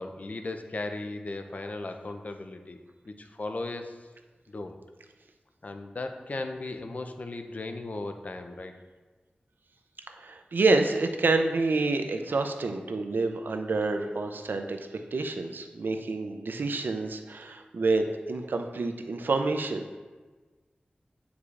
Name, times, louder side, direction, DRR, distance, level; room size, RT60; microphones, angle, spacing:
voice 1, 0.0-2.8 3.1-4.0 4.5-4.8 5.6-8.8, left 2 dB, 50° left, 6 dB, 0.5 m, -36 dB
voice 2, 10.1-19.8, right 3 dB, 85° right, 6 dB, 0.5 m, -28 dB
8.2 x 4.7 x 2.4 m, 1.3 s
wide cardioid pair, 55°, 3 cm